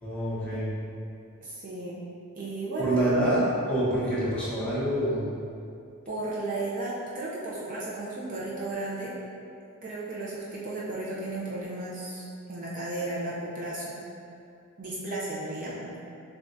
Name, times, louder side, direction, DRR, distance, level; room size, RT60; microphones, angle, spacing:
voice 1, 0.0-0.7 2.8-5.3, right 1 dB, 5° left, -10 dB, 0.9 m, -26 dB
voice 2, 1.4-2.0 2.3-3.0 6.1-9.1 9.8-12.2 12.5-14.0 14.8-16.0, right 2 dB, 40° right, -6 dB, 0.6 m, -34 dB
6.9 x 2.3 x 2.6 m, 2.5 s
head